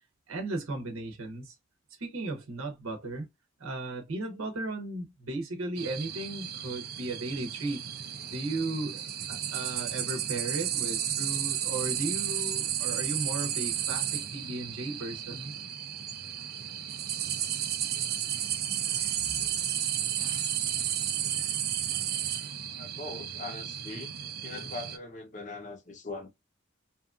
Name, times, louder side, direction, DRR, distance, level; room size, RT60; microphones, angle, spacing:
voice 1, 0.3-1.5 2.0-3.3 3.6-7.8 8.3-9.0 9.3-15.5, right 2 dB, 85° right, 0.7 m, -35 dB
sound 1, 5.8-25.0, right 10 dB, 45° right, 0.4 m, -33 dB
voice 2, 22.8-24.1 24.4-26.3, left 3 dB, 35° left, 0.7 m, -41 dB
2.7 x 2.4 x 2.3 m
head